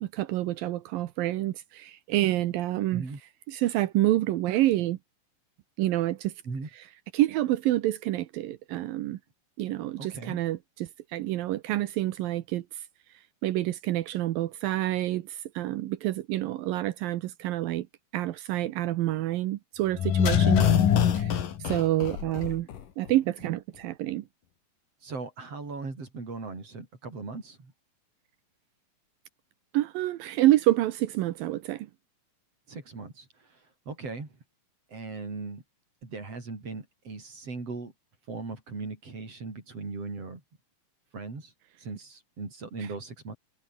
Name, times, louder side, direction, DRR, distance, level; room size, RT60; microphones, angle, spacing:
voice 1, 0.0-3.1 3.5-5.0 5.8-6.3 6.7-6.8 7.1-9.2 9.6-12.6 13.4-17.9 18.1-20.7 21.1-21.4 21.7-22.7 23.0-24.2 29.7-31.9 42.8-42.9, right 15 dB, 80° right, 2.7 m, -28 dB
voice 2, 10.0-10.4 20.6-20.8 25.0-27.7 32.7-33.3 33.9-34.3 34.9-35.6 36.0-37.9 38.3-40.4 41.1-41.5 41.8-43.4, right 3 dB, 40° right, 6.8 m, -38 dB
sound 1, 20.0-22.8 23.1-23.2, left 9 dB, 70° left, 3.8 m, -23 dB
omnidirectional pair, 4.1 m